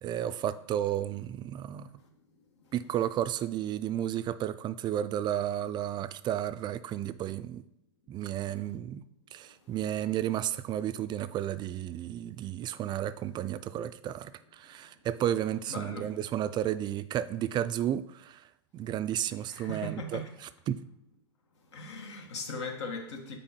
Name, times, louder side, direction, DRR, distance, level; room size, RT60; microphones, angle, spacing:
voice 1, 0.0-1.9 2.7-7.6 8.1-9.0 9.3-18.4 18.7-20.2 20.7-20.8, right 11 dB, 30° right, 13 dB, 0.3 m, -32 dB
voice 2, 15.7-16.1 19.3-20.3 21.7-23.4, left 2 dB, 80° left, 4 dB, 1.4 m, -39 dB
6.0 x 4.5 x 4.4 m, 0.78 s
hypercardioid pair, 105°, 14 cm